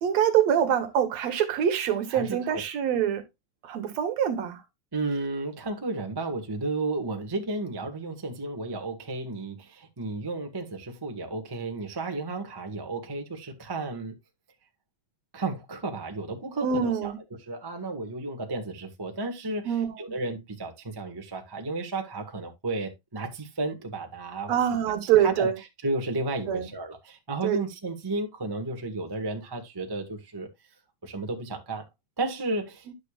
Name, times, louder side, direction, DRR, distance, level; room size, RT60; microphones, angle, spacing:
voice 1, 0.0-3.2 3.6-4.6 16.6-17.2 19.7-19.9 24.5-25.6 26.5-26.7 27.4-27.6, right 9 dB, 70° right, 2.3 m, -25 dB
voice 2, 2.1-2.5 4.9-14.1 15.3-17.1 17.5-24.5 25.2-25.5 25.8-30.5 31.0-31.9 32.2-32.9, right 2 dB, 25° right, 0.4 m, -33 dB
10.5 x 6.8 x 2.4 m
omnidirectional pair, 3.4 m